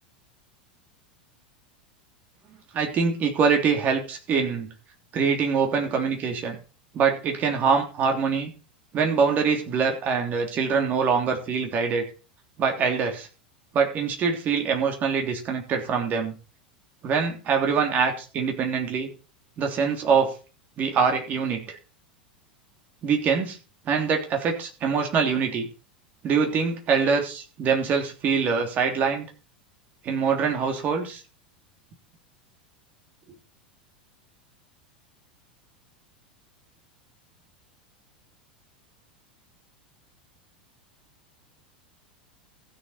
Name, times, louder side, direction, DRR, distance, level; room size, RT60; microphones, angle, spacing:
voice 1, 2.7-4.7 5.1-6.6 6.9-8.5 8.9-12.0 12.6-13.3 13.7-16.3 17.0-19.1 19.6-20.3 20.8-21.8 23.0-23.6 23.8-25.7 26.2-29.3 30.0-31.2, right 6 dB, 35° right, 3 dB, 3.3 m, -24 dB
15.5 x 7.0 x 4.3 m, 0.34 s
figure-of-eight pair, 85°, 5 cm